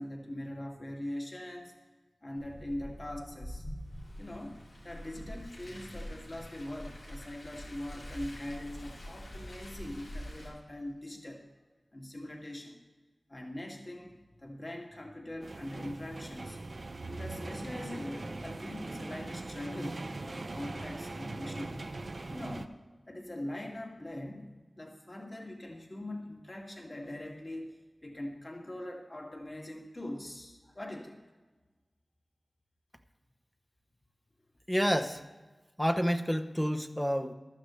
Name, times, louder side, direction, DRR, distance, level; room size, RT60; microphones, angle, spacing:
voice 1, 0.0-1.7 2.2-3.6 4.1-11.4 11.9-12.8 13.3-16.6 17.1-21.8 22.3-22.8 23.1-27.8 28.0-31.2, left 1 dB, 40° left, 0 dB, 2.2 m, -42 dB
Car, 2.4-10.5, equal, 90° left, 4.0 m, -45 dB
sound 1, 15.4-22.7, right 2 dB, 60° right, 0.7 m, -41 dB
voice 2, 34.7-35.2 35.8-37.3, equal, 5° left, 6 dB, 0.9 m, -29 dB
15.5 x 12.0 x 3.2 m, 1.2 s
wide cardioid pair, 50°, 0 cm